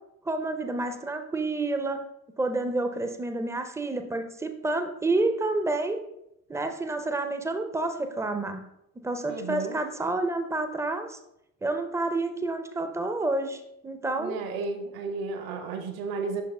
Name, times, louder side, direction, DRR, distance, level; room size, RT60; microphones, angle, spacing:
voice 1, 0.3-2.0 2.4-6.0 6.5-8.7 9.0-11.2 11.6-14.4, right 2 dB, 5° right, 7 dB, 0.5 m, -29 dB
voice 2, 9.3-9.8 14.2-16.4, right 4 dB, 55° right, 6 dB, 0.9 m, -33 dB
6.6 x 6.3 x 2.2 m, 0.81 s
figure-of-eight pair, 50°, 44 cm